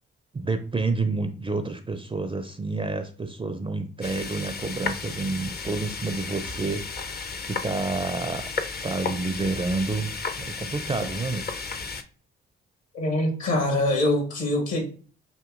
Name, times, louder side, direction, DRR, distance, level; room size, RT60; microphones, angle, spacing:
voice 1, 0.3-6.8 7.5-8.5 8.8-11.5, right 3 dB, 15° right, 0.5 m, -29 dB
sound 1, 4.0-12.0, left 4 dB, 35° left, 0.6 m, -34 dB
voice 2, 12.9-14.8, left 1 dB, 60° left, 1.8 m, -24 dB
6.0 x 2.6 x 2.5 m
hypercardioid pair, 40°, 29 cm